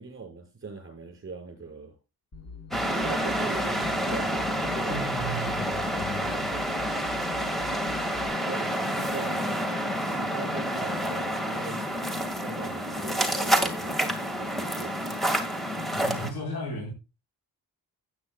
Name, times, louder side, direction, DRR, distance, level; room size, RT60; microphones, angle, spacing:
voice 1, 0.0-1.9 2.9-5.5 8.5-9.6 10.1-11.8 12.4-14.0 14.3-14.9, right 4 dB, 35° right, 6.1 m, -41 dB
sound 1, 2.3-8.3, left 5 dB, 40° left, 6.0 m, -44 dB
sound 2, 2.7-16.3, equal, ahead, 1.9 m, -28 dB
voice 2, 4.9-6.5 15.9-16.9, equal, 85° left, 5.0 m, -35 dB
17.5 x 8.8 x 2.3 m
wide cardioid pair, 145°, 37 cm